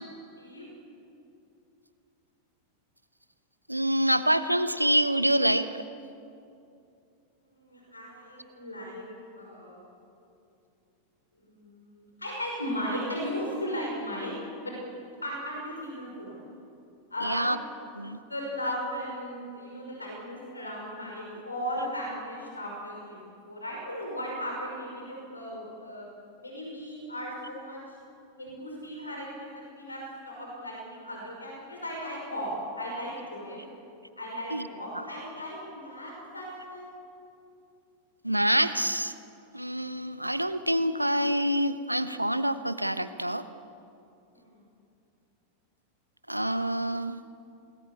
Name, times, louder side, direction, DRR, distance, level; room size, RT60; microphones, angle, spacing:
voice 1, 3.7-5.7 17.2-17.6 18.0-18.2 34.5-34.6 38.2-39.1 39.5-43.4 46.3-47.2, right 1 dB, 85° right, 12 dB, 1.1 m, -26 dB
voice 2, 7.4-9.1 9.4-9.8 11.4-14.8 15.2-16.4 17.1-17.6 18.1-26.1 26.4-28.0 28.4-33.6 34.2-36.9 44.3-44.6, equal, 80° left, -1 dB, 5.6 m, -36 dB
27.5 x 20.0 x 8.5 m, 2.6 s
figure-of-eight pair, 90°, 0 cm